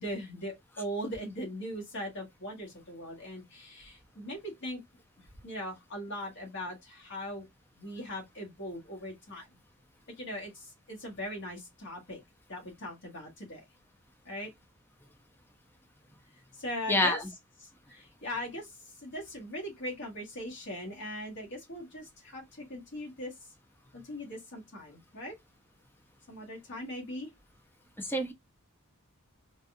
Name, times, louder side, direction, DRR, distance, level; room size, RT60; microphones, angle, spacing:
voice 1, 0.0-4.8 5.4-7.4 7.8-9.5 10.2-12.2 12.5-13.6 14.2-14.5 16.5-17.2 17.6-23.5 23.9-25.3 26.3-27.3, equal, 55° left, 1.6 m, -40 dB
voice 2, 16.9-17.2 28.0-28.3, left 1 dB, 10° left, 0.6 m, -27 dB
3.9 x 2.4 x 2.6 m
head